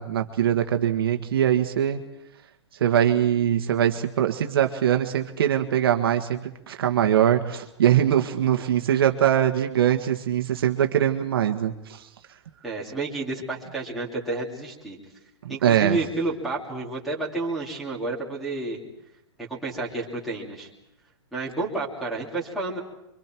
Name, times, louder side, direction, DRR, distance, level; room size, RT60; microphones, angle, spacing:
voice 1, 0.0-2.0 2.8-12.0 15.4-16.0, right 10 dB, 55° right, 5 dB, 1.6 m, -22 dB
voice 2, 12.6-15.0 15.5-18.8 19.5-20.7 21.3-22.8, right 2 dB, ahead, -7 dB, 3.0 m, -30 dB
28.5 x 24.5 x 4.6 m, 0.85 s
hypercardioid pair, 175°, 14 cm